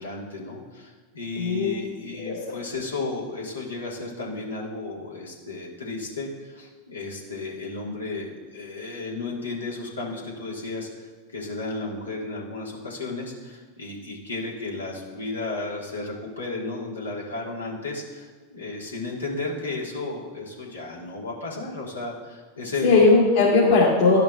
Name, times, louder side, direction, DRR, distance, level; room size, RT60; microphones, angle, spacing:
voice 1, 0.0-22.9, left 3 dB, 85° left, -3 dB, 1.7 m, -33 dB
voice 2, 1.4-1.7 2.1-2.4 22.8-24.2, left 3 dB, 70° left, -9 dB, 2.5 m, -18 dB
12.0 x 5.6 x 2.4 m, 1.4 s
hypercardioid pair, 90°, 0 cm